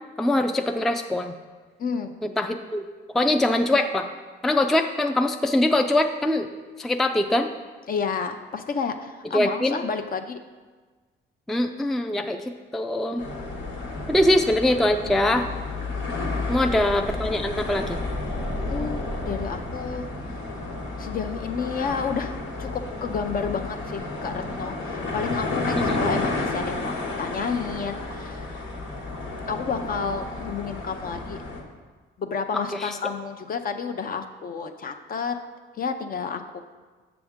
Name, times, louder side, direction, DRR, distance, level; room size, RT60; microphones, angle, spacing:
voice 1, 0.2-1.3 2.2-2.8 3.1-4.1 4.4-6.5 6.8-7.5 9.3-9.8 11.5-12.4 12.7-13.2 14.1-15.5 16.5-18.0 25.7-26.0 32.7-33.0, left 1 dB, ahead, 6 dB, 0.3 m, -23 dB
voice 2, 1.8-2.1 7.9-10.4 16.4-16.5 18.7-20.1 21.0-28.6 29.5-31.4 32.2-35.4 35.7-36.6, left 5 dB, 45° left, 7 dB, 0.6 m, -30 dB
sound 1, 13.2-31.6, left 2 dB, 85° left, 1.4 m, -32 dB
sound 2, 16.5-21.1, equal, 65° left, 1.2 m, -36 dB
6.9 x 6.9 x 3.6 m, 1.4 s
cardioid pair, 90°, 20 cm